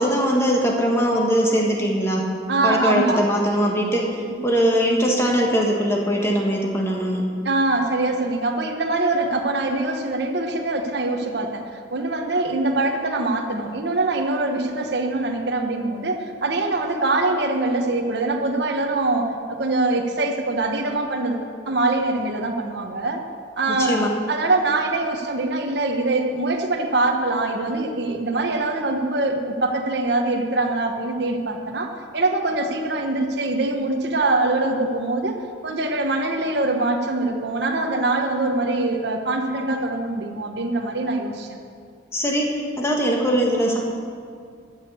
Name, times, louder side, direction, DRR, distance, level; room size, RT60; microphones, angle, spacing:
voice 1, 0.0-2.3 2.6-7.2 23.7-24.1 42.1-43.8, equal, 15° left, -1 dB, 1.6 m, -21 dB
voice 2, 2.5-3.2 7.4-23.2 23.6-35.4 35.6-41.6, right 2 dB, 60° right, 3 dB, 1.0 m, -23 dB
12.5 x 6.5 x 8.1 m, 2.3 s
head